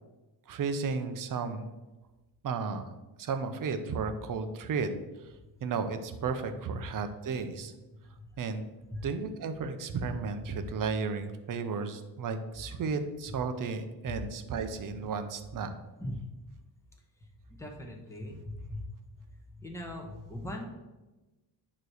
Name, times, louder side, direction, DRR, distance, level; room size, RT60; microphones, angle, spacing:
voice 1, 0.5-1.7 2.4-2.9 3.2-4.9 5.6-7.7 8.4-8.7 9.0-15.7, right 5 dB, 45° right, 8 dB, 0.8 m, -33 dB
voice 2, 17.6-18.8 19.6-20.7, left 1 dB, 5° left, 1 dB, 1.1 m, -39 dB
9.4 x 3.2 x 6.4 m, 1.1 s
cardioid pair, 140°, 45 cm